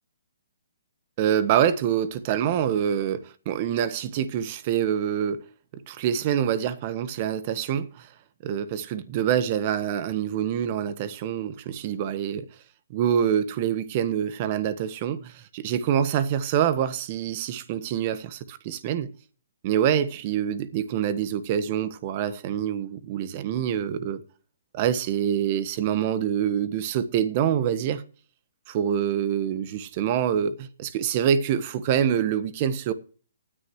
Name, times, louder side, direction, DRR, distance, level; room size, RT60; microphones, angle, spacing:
voice 1, 1.2-5.4 5.9-8.1 8.4-12.4 12.9-19.1 19.6-24.2 24.7-28.0 28.7-32.9, right 9 dB, 40° right, 1.3 m, -26 dB
18.5 x 10.0 x 3.1 m
hypercardioid pair, 140°, 0 cm